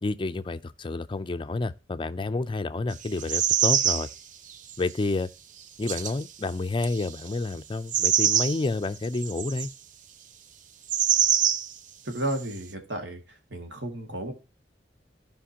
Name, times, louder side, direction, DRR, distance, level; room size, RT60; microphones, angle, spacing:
voice 1, 0.0-4.1 4.8-5.3 5.8-9.7, left 3 dB, 30° left, 0.5 m, -29 dB
sound 1, 3.0-4.1 4.5-4.9 5.8-6.2 6.8-7.3 7.9-8.7 9.0-9.7 10.9-11.7 12.2-12.4, right 8 dB, 45° right, 0.5 m, -24 dB
voice 2, 12.0-14.3, right 1 dB, 75° right, 2.0 m, -33 dB
14.0 x 5.3 x 2.8 m
head